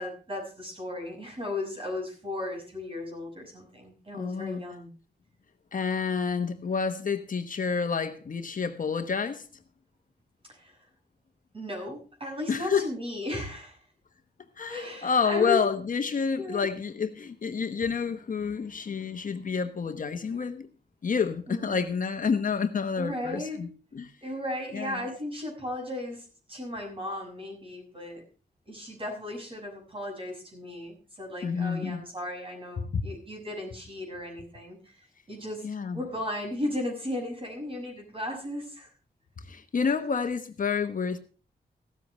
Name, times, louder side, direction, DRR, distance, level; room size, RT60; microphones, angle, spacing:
voice 1, 0.0-4.9 10.5-10.8 11.5-13.8 14.7-15.6 16.4-16.6 21.5-21.8 23.0-23.7 24.2-28.2 28.7-35.7 35.9-38.9, left 1 dB, 30° right, 6.3 m, -36 dB
voice 2, 4.1-4.6 5.7-9.4 12.5-12.9 14.6-20.7 21.0-23.7 23.9-24.1 24.7-25.0 31.4-32.0 32.9-33.1 35.6-36.0 39.5-41.2, left 5 dB, 50° left, 1.1 m, -29 dB
16.0 x 13.5 x 3.2 m
wide cardioid pair, 165°, 17 cm